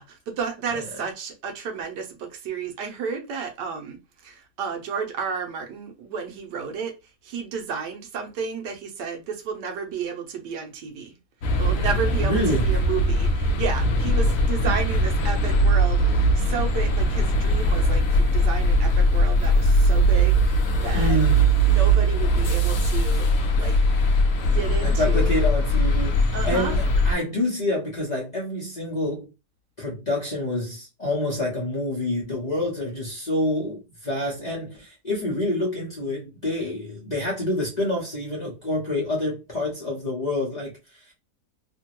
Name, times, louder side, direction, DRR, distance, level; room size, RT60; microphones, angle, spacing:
voice 1, 0.0-6.9 7.2-11.2 11.6-21.2 21.7-23.8 24.4-25.4 26.3-26.8, right 5 dB, 85° right, 1.3 m, -32 dB
sound 1, 11.4-27.1, right 1 dB, 65° left, 0.9 m, -20 dB
voice 2, 12.2-12.7 14.6-14.7 20.9-21.5 24.8-29.3 29.8-41.1, left 1 dB, 35° left, 0.7 m, -27 dB
3.3 x 2.2 x 2.9 m
omnidirectional pair, 1.8 m